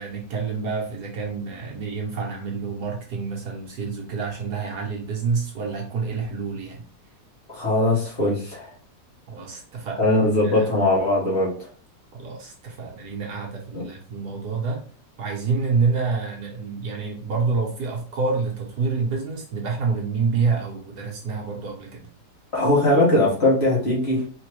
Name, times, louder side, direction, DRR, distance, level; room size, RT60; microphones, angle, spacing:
voice 1, 0.0-6.8 9.3-10.1 10.4-10.7 12.1-14.8 15.2-22.1, right 4 dB, 65° right, 0 dB, 1.4 m, -27 dB
voice 2, 7.5-8.7 10.0-11.5 13.7-13.8 22.5-24.2, left 1 dB, 35° left, -5 dB, 1.9 m, -20 dB
4.2 x 3.6 x 3.1 m, 0.42 s
omnidirectional pair, 1.9 m